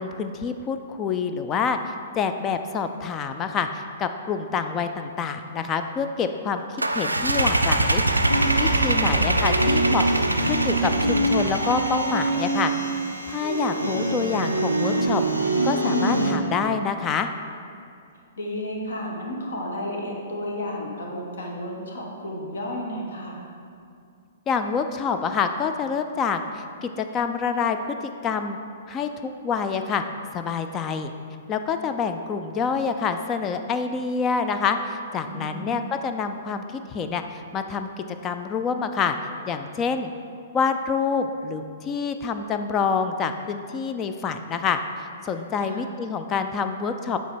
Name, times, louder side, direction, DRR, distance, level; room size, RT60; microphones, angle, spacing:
voice 1, 0.0-6.6 6.9-8.0 8.6-10.1 10.4-12.7 13.3-15.2 15.6-17.3 24.5-27.8 28.2-28.6 28.9-30.0 30.3-31.1 31.5-37.9 38.2-39.2 39.5-40.1 40.5-47.2, left 5 dB, 25° left, 8 dB, 0.3 m, -27 dB
sound 1, 6.8-12.3, right 1 dB, 85° right, 0.4 m, -23 dB
sound 2, 8.3-16.3, right 2 dB, 90° left, 0.7 m, -25 dB
voice 2, 8.9-9.3 18.4-23.4 35.2-35.9 45.6-45.9, left 1 dB, 65° left, -1 dB, 1.2 m, -32 dB
8.2 x 3.3 x 4.4 m, 2.4 s
figure-of-eight pair, 115°, 0 cm